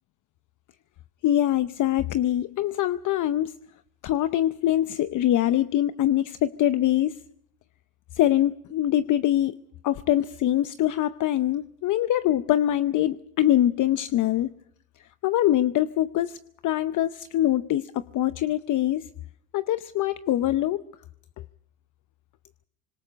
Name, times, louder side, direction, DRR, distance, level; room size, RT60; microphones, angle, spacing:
voice 1, 1.2-3.5 4.0-7.2 8.1-9.6 9.8-14.5 15.2-16.4 16.6-19.1 19.5-20.8, left 12 dB, 45° left, 13 dB, 0.8 m, -23 dB
25.5 x 21.5 x 5.3 m, 0.69 s
supercardioid pair, 90°, 42 cm